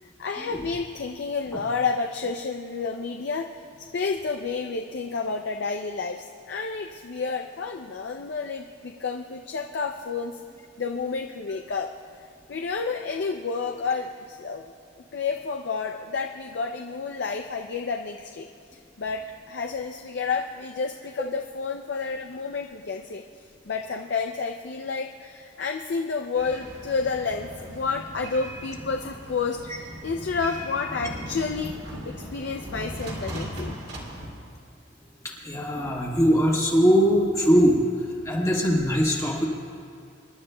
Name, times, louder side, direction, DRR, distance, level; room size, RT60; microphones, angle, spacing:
voice 1, 0.2-3.5 3.9-10.4 10.8-11.9 12.5-14.6 15.1-18.5 19.0-23.2 23.7-31.7 32.1-33.7, left 4 dB, 55° left, 3 dB, 0.4 m, -30 dB
sound 1, 26.4-34.3, equal, 55° right, 2.2 m, -38 dB
voice 2, 35.4-37.8 38.2-39.5, equal, 15° left, -3 dB, 1.4 m, -21 dB
26.5 x 11.5 x 2.2 m, 2.4 s
head